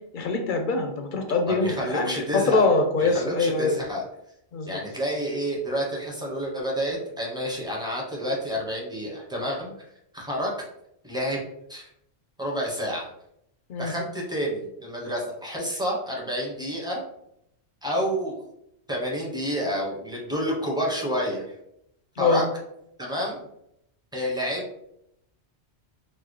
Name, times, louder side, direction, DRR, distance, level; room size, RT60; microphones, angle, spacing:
voice 1, 0.1-3.8 4.5-4.8 13.7-13.9 22.2-22.4, left 3 dB, 60° left, 5 dB, 0.6 m, -24 dB
voice 2, 1.5-2.6 3.0-4.0 4.7-9.9 10.1-10.5 11.0-11.4 11.7-11.9 12.4-13.1 13.8-17.0 17.8-18.5 18.9-21.4 22.2-22.4 23.0-23.4 24.1-24.6, equal, 5° right, -3 dB, 0.6 m, -29 dB
4.2 x 2.0 x 3.1 m, 0.77 s
omnidirectional pair, 1.1 m